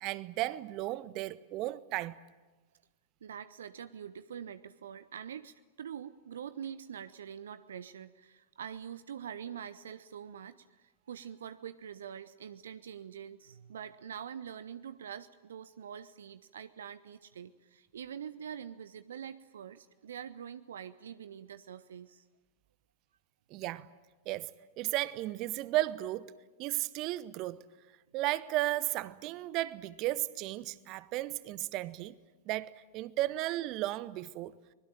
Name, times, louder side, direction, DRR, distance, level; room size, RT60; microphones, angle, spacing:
voice 1, 0.0-2.2 23.5-23.9 24.3-24.5 24.8-27.7 28.1-32.2 32.5-34.5, right 16 dB, 40° right, 0.9 m, -34 dB
voice 2, 3.2-22.3, right 8 dB, 65° right, 0.7 m, -45 dB
24.5 x 21.0 x 9.0 m
figure-of-eight pair, 90°, 0 cm